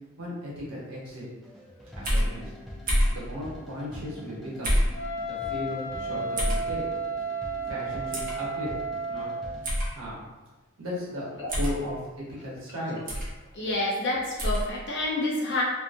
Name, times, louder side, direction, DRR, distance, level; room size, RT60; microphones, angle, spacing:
voice 1, 0.2-1.2 1.9-2.5 3.1-4.8 5.2-6.8 7.7-8.7 9.1-9.3 9.9-10.2 10.8-11.2 11.5-13.0, equal, 75° right, -5 dB, 1.0 m, -36 dB
sound 1, 1.4-9.7, left 1 dB, ahead, 0.3 m, -44 dB
sound 2, 2.0-2.3 2.9-3.2 4.6-4.9 6.4-6.6 8.1-8.3 9.6-9.9 11.5-11.8 13.1-13.3 14.4-14.6, equal, 40° right, 0.7 m, -25 dB
Wind instrument woodwind instrument, 4.9-9.6, right 2 dB, 75° left, 1.1 m, -33 dB
voice 2, 13.5-15.6, left 2 dB, 50° left, -3 dB, 0.6 m, -28 dB
2.7 x 2.4 x 2.5 m, 1.2 s
head